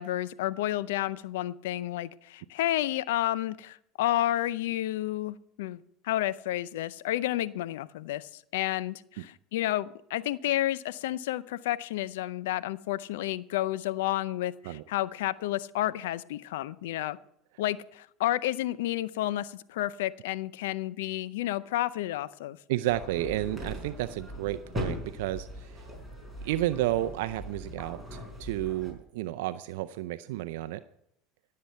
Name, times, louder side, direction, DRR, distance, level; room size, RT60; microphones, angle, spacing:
voice 1, 0.0-17.2 17.6-22.6, left 14 dB, 80° left, 0.5 m, -31 dB
voice 2, 22.7-25.9 26.4-30.8, right 15 dB, 75° right, 0.5 m, -31 dB
sound 1, 22.9-28.9, equal, 5° left, 5.2 m, -40 dB
16.5 x 7.6 x 5.6 m
hypercardioid pair, 95°, 0 cm